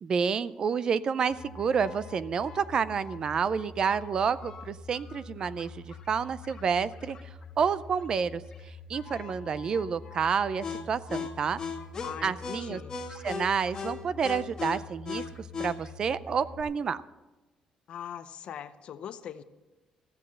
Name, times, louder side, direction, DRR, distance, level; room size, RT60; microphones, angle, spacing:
voice 1, 0.0-7.2 7.6-8.4 8.9-11.6 12.2-12.8 13.2-15.2 15.6-17.0, right 6 dB, 35° right, 16 dB, 0.4 m, -29 dB
sound 1, 1.3-16.6, left 5 dB, 30° left, 1.7 m, -41 dB
voice 2, 12.0-13.0 17.9-19.4, left 9 dB, 55° left, 12 dB, 0.7 m, -41 dB
14.5 x 7.8 x 7.5 m, 1.1 s
cardioid pair, 175°, 2 cm